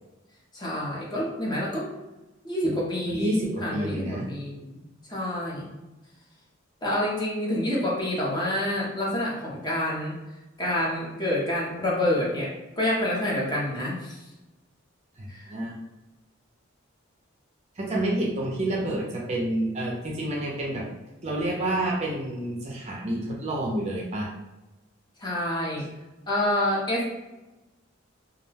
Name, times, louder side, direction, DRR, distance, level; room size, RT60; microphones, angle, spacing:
voice 1, 0.5-1.9 2.4-4.8 5.1-5.8 6.8-10.1 10.6-12.5 12.8-14.2 15.3-15.5 25.2-25.8 26.3-27.1, left 1 dB, 20° left, -4 dB, 0.6 m, -28 dB
voice 2, 2.6-4.3 15.2-15.7 17.8-20.8 21.2-24.3, right 1 dB, 30° right, -3 dB, 0.4 m, -29 dB
2.3 x 2.2 x 3.2 m, 1.0 s
head